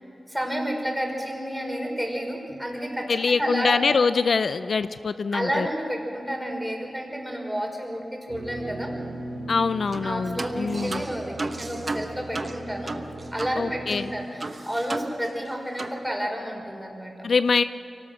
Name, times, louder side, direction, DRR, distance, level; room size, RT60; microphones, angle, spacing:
voice 1, 0.3-3.8 5.3-8.9 10.0-12.9 13.3-17.1, equal, 5° right, 0 dB, 5.1 m, -30 dB
voice 2, 3.1-5.7 9.5-11.1 13.6-14.1 17.2-17.6, left 5 dB, 70° left, 13 dB, 0.4 m, -24 dB
sound 1, 8.3-14.3, right 2 dB, 85° right, 2.2 m, -38 dB
sound 2, 9.9-10.1 10.4-13.6 13.9-14.0 14.4-15.5 15.8-16.0, right 3 dB, 45° right, 1.1 m, -34 dB
24.0 x 18.5 x 6.4 m, 2.9 s
cardioid pair, 65°, 0 cm